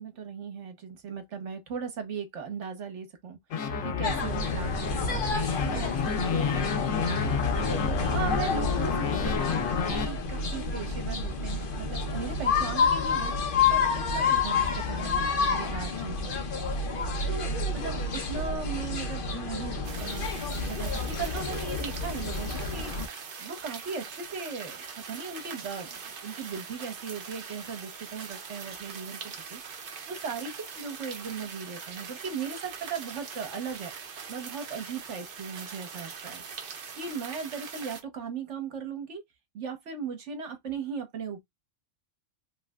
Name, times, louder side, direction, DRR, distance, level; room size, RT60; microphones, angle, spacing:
voice 1, 0.0-7.6 8.1-13.3 13.7-16.6 17.3-23.1 23.4-29.6 30.1-36.4 36.9-39.2 39.5-41.4, right 5 dB, 65° right, 1.3 m, -38 dB
sound 1, 3.5-10.1, left 5 dB, 85° left, 1.2 m, -29 dB
sound 2, 4.0-23.1, left 4 dB, 50° left, 0.9 m, -29 dB
sound 3, 19.8-38.0, right 6 dB, 50° right, 0.8 m, -42 dB
3.2 x 3.1 x 2.3 m
omnidirectional pair, 1.3 m